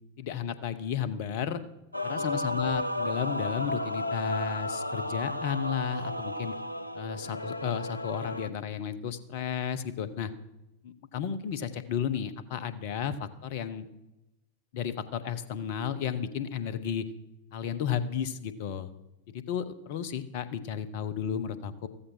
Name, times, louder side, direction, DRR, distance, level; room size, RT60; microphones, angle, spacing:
voice 1, 0.2-1.6 2.0-6.5 6.9-10.3 10.8-13.9 14.7-17.1 17.5-18.9 19.3-21.9, left 8 dB, 50° left, 15 dB, 1.0 m, -33 dB
Male singing / Female singing / Musical instrument, 1.9-8.5, left 1 dB, 85° left, 0.5 m, -33 dB
14.5 x 14.0 x 4.4 m, 0.93 s
figure-of-eight pair, 90°, 0 cm